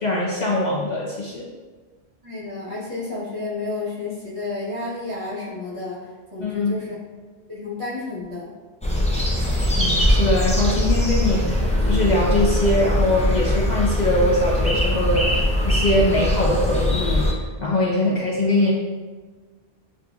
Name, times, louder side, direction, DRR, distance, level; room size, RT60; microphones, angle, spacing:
voice 1, 0.0-1.5 6.4-6.9 9.8-17.3 17.6-18.7, left 1 dB, 50° left, -5 dB, 0.6 m, -22 dB
voice 2, 2.2-6.0 6.3-7.0 7.5-8.5, left 3 dB, 30° right, -7 dB, 1.1 m, -31 dB
sound 1, 8.8-17.3, left 1 dB, 10° left, 0.4 m, -21 dB
6.9 x 2.5 x 2.3 m, 1.4 s
omnidirectional pair, 1.1 m